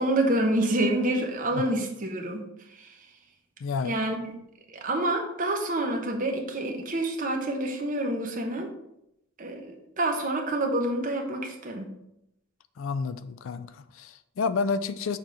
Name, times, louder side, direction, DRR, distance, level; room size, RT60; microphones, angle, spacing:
voice 1, 0.0-2.4 2.8-2.9 3.8-4.2 4.7-8.7 9.4-11.8, right 1 dB, 40° right, 2 dB, 1.0 m, -27 dB
voice 2, 3.6-4.0 12.8-15.2, left 4 dB, 65° left, 12 dB, 0.4 m, -30 dB
6.8 x 3.0 x 5.2 m, 0.81 s
head